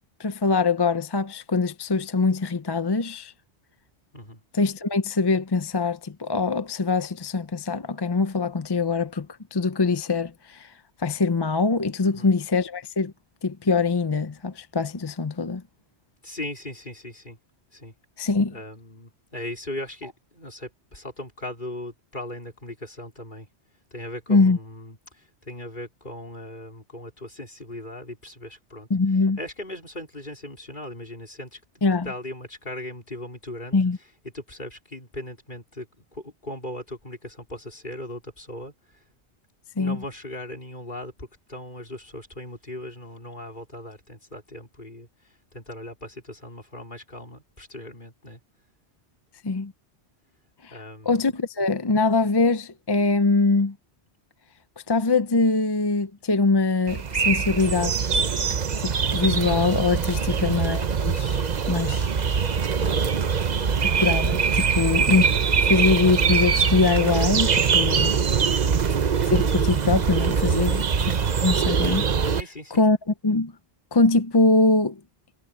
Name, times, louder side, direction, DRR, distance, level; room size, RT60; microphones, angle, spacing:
voice 1, 0.2-3.3 4.5-9.3 9.5-10.7 11.0-13.1 13.4-15.6 18.2-18.5 24.3-24.6 28.9-29.4 31.8-32.1 33.7-34.0 39.8-40.0 49.4-49.7 50.6-50.7 51.1-53.7 54.9-58.0 58.8-61.4 61.7-62.1 63.8-68.2 69.3-70.8 71.4-72.1 72.8-73.0 73.2-73.5 73.9-75.0, left 3 dB, 30° left, 0.5 m, -23 dB
voice 2, 12.0-12.4 16.2-17.4 17.7-17.9 18.5-23.5 23.9-28.9 29.4-31.6 32.0-33.8 34.2-35.9 36.1-38.7 39.8-45.1 45.5-48.4 50.7-51.3 60.2-60.5 62.6-63.1 64.6-65.0 68.4-68.7 70.5-70.8 72.3-72.8, left 1 dB, 45° left, 4.7 m, -38 dB
sound 1, 56.9-72.4, right 6 dB, 45° right, 0.8 m, -23 dB
omnidirectional pair, 1.2 m